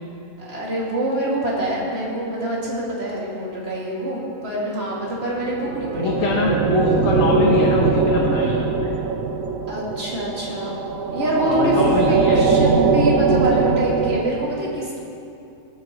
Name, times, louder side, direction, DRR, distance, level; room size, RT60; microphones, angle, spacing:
voice 1, 0.4-6.4 9.7-10.8 11.1-11.8 12.1-15.0, right 1 dB, 50° right, -6 dB, 2.5 m, -25 dB
sound 1, 5.4-14.2, right 4 dB, 80° right, 1.1 m, -20 dB
voice 2, 6.0-9.0 11.5-12.4, left 3 dB, 70° left, -2 dB, 1.4 m, -23 dB
18.5 x 8.1 x 3.0 m, 2.6 s
omnidirectional pair, 1.4 m